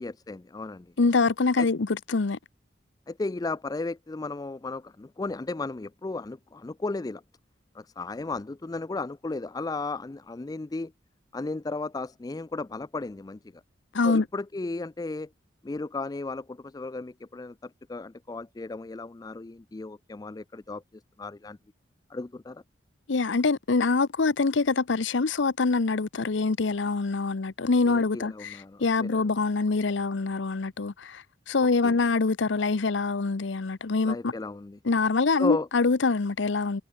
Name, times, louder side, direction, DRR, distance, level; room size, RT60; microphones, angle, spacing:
voice 1, 0.0-0.9 1.6-1.7 3.1-7.2 7.7-10.9 11.3-13.4 14.0-15.3 15.6-20.8 21.2-21.6 22.1-22.6 27.8-29.3 31.8-32.0 34.0-34.8 35.4-35.7, left 3 dB, 20° left, 0.4 m, -35 dB
voice 2, 1.0-2.4 13.9-14.2 23.1-34.3 34.8-36.8, left 4 dB, 75° left, 0.7 m, -25 dB
head